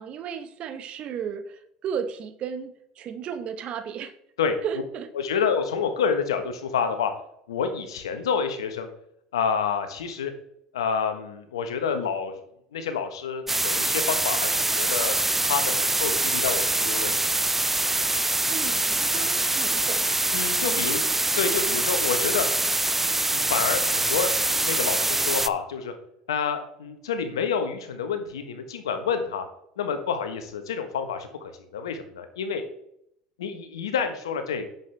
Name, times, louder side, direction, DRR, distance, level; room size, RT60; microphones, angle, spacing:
voice 1, 0.0-4.1 4.6-5.4 18.5-20.0 20.6-21.0, right 7 dB, 50° right, 9 dB, 1.3 m, -34 dB
voice 2, 5.1-7.1 7.5-8.9 9.3-10.3 10.7-12.3 12.7-17.4 20.3-21.0 21.4-22.4 23.1-25.9 26.3-29.5 29.8-32.6 33.4-34.7, left 6 dB, 85° left, 8 dB, 1.3 m, -28 dB
sound 1, 13.5-25.5, right 2 dB, 10° right, 0.5 m, -24 dB
9.5 x 7.3 x 3.5 m, 0.74 s
hypercardioid pair, 75°, 2 cm